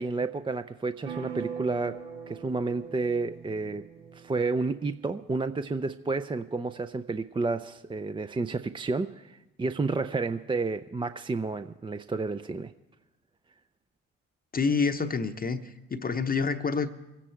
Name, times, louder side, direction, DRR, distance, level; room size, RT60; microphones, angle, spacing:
voice 1, 0.0-3.8 4.1-12.7, right 3 dB, 15° right, 10 dB, 0.5 m, -31 dB
sound 1, 1.0-4.8, right 7 dB, 85° right, 1.5 m, -41 dB
voice 2, 14.5-16.9, left 5 dB, 25° left, 8 dB, 0.8 m, -28 dB
24.0 x 10.0 x 4.5 m, 0.99 s
hypercardioid pair, 55°, 33 cm